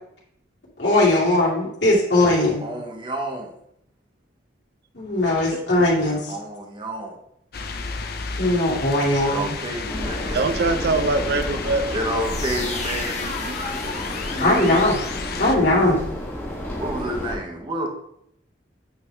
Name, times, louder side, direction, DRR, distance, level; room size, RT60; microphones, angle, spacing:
voice 1, 0.8-2.6 4.9-6.3 8.4-9.5 14.4-15.0 15.4-16.0, left 1 dB, 75° left, -5 dB, 2.3 m, -19 dB
voice 2, 2.6-3.6 6.0-7.2 9.2-10.6 11.9-14.8 16.8-17.9, right 1 dB, 30° right, 1 dB, 0.9 m, -30 dB
sound 1, 7.5-15.6, left 4 dB, 60° left, 0.6 m, -32 dB
sound 2, 9.9-17.4, equal, 15° left, 1.2 m, -32 dB
voice 3, 10.3-12.0, right 3 dB, 65° right, 9 dB, 0.6 m, -22 dB
sound 3, 12.2-16.0, left 3 dB, 40° left, 1.0 m, -34 dB
8.7 x 3.5 x 3.3 m, 0.74 s
head